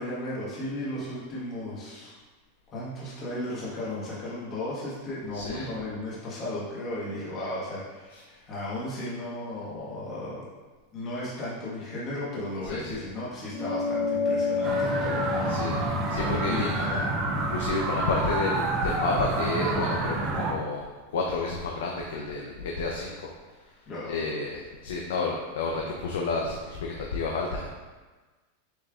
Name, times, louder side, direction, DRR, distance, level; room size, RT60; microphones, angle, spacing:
voice 1, 0.0-2.1 2.7-10.4 10.9-15.6 16.1-17.0 23.9-24.2, left 1 dB, 30° left, -8 dB, 1.4 m, -35 dB
voice 2, 5.3-5.7 8.1-8.2 12.7-13.0 15.5-15.8 16.1-16.7 17.5-20.8 21.1-23.3 24.1-27.7, left 3 dB, 90° left, -1 dB, 0.5 m, -30 dB
sound 1, 13.5-18.3, left 4 dB, 50° left, 0.8 m, -31 dB
sound 2, 14.6-20.5, right 3 dB, 25° right, 0.5 m, -28 dB
6.3 x 3.2 x 2.4 m, 1.3 s
supercardioid pair, 155°, 0 cm